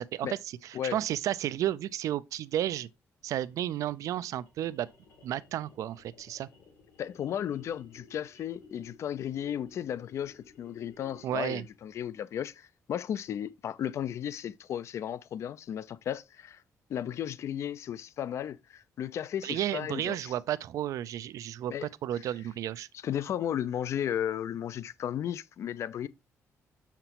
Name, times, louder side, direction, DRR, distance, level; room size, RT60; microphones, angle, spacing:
voice 1, 0.0-2.9 3.2-4.9 5.2-6.5 11.2-11.6 19.4-22.9, right 12 dB, 75° right, 0.4 m, -32 dB
sound 1, 3.2-11.9, left 4 dB, 85° left, 3.2 m, -56 dB
voice 2, 7.0-16.6 16.9-20.3 21.7-21.9 22.1-22.2 23.0-26.1, left 10 dB, 55° left, 0.4 m, -34 dB
6.7 x 5.8 x 2.9 m
cardioid pair, 150°, 6 cm